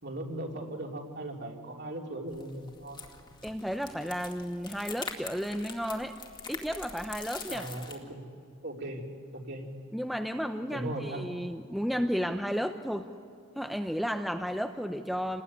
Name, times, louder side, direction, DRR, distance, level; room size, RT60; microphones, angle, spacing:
voice 1, 0.0-3.0 7.5-8.2 8.6-9.0 9.3-9.7 10.7-11.3, right 1 dB, 55° right, 1 dB, 3.3 m, -38 dB
sound 1, 2.3-8.0, left 4 dB, 20° left, 2.2 m, -44 dB
voice 2, 3.4-6.1 6.5-7.7 9.9-13.1 13.5-15.4, equal, ahead, 6 dB, 0.7 m, -33 dB
28.0 x 19.5 x 9.7 m, 2.2 s
head